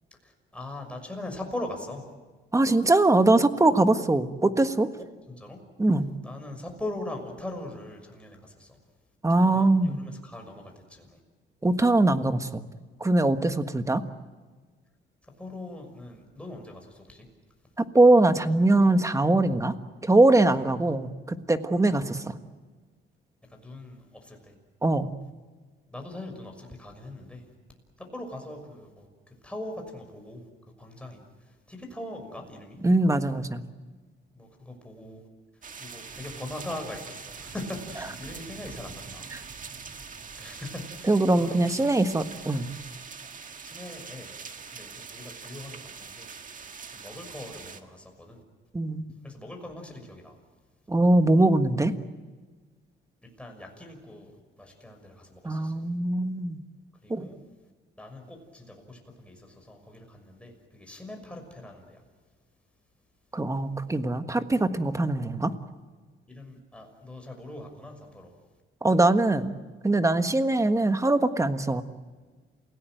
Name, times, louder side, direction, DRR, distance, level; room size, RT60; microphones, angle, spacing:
voice 1, 0.2-2.1 5.3-5.6 6.2-8.8 9.3-11.2 15.2-17.3 21.2-21.5 22.2-22.4 23.4-24.6 25.9-27.5 28.0-30.5 30.8-32.9 34.3-35.2 35.5-39.3 40.4-42.1 43.6-44.4 44.7-46.3 46.9-48.4 49.2-50.4 53.2-55.8 57.0-57.4 58.0-62.0 66.3-68.3, left 1 dB, 5° left, 3 dB, 6.1 m, -41 dB
voice 2, 2.5-4.9 5.8-6.1 9.2-10.0 11.6-12.6 13.0-14.0 17.8-19.7 20.0-22.4 24.8-25.1 32.8-33.6 39.3-39.4 41.1-42.7 48.7-49.0 50.9-51.9 55.4-56.6 57.1-57.3 63.3-65.5 68.8-69.5 69.8-71.8, right 2 dB, 15° right, 9 dB, 1.5 m, -22 dB
sound 1, 35.6-47.8, right 5 dB, 40° right, 1.8 m, -43 dB
28.5 x 17.5 x 9.1 m, 1.4 s
cardioid pair, 90°, 20 cm